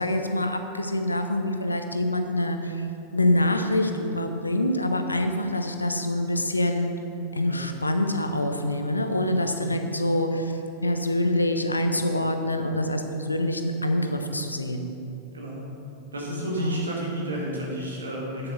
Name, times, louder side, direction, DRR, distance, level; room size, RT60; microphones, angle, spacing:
voice 1, 0.0-2.9 3.1-6.9 7.3-14.9 16.5-16.8, left 1 dB, 80° left, 6 dB, 0.7 m, -25 dB
voice 2, 15.3-15.7 16.1-18.5, right 1 dB, 75° right, -3 dB, 2.3 m, -32 dB
9.0 x 7.6 x 5.7 m, 2.9 s
figure-of-eight pair, 90°, 0 cm